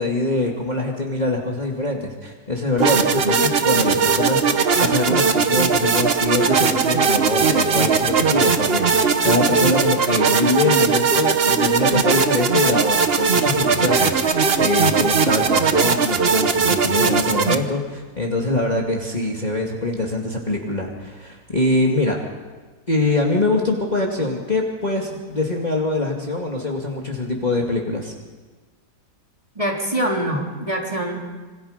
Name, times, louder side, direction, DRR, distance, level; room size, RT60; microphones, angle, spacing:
voice 1, 0.0-22.2 22.9-28.1, left 2 dB, 25° left, -1 dB, 2.4 m, -23 dB
sound 1, 2.8-17.5, right 5 dB, 40° right, 1.2 m, -19 dB
voice 2, 29.6-31.2, right 1 dB, 20° right, -2 dB, 3.8 m, -24 dB
26.5 x 26.0 x 5.2 m, 1.3 s
omnidirectional pair, 1.8 m